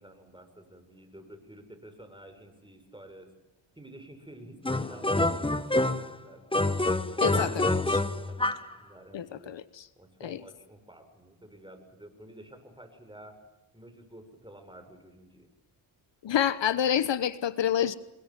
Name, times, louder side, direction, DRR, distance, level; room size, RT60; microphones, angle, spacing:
voice 1, 0.0-3.3 3.8-6.5 8.1-9.6 10.0-13.4 13.7-15.5, right 1 dB, 10° right, 6 dB, 7.2 m, -50 dB
sound 1, 4.6-6.1 6.5-8.7, left 2 dB, 10° left, 1.5 m, -27 dB
voice 2, 7.2-8.0 9.1-9.8 10.2-10.4 16.2-17.9, left 9 dB, 65° left, 14 dB, 1.1 m, -28 dB
27.5 x 22.5 x 7.6 m, 1.0 s
cardioid pair, 65°, 47 cm